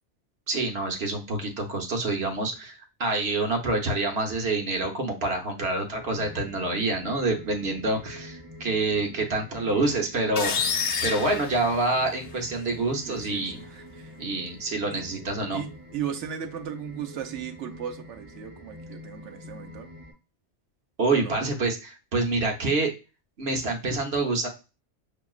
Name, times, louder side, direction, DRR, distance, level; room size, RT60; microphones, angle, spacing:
voice 1, 0.5-10.6 11.0-13.6 14.2-15.6 21.0-22.9 23.4-24.5, right 2 dB, 60° right, 1.2 m, -27 dB
sound 1, 6.0-20.1, left 1 dB, 5° left, 2.3 m, -46 dB
sound 2, 10.4-12.3, left 6 dB, 55° left, 0.7 m, -28 dB
voice 2, 13.1-14.1 14.9-15.2 15.5-19.9 21.1-21.4, right 9 dB, 80° right, 1.0 m, -36 dB
5.8 x 2.9 x 2.3 m
omnidirectional pair, 1.2 m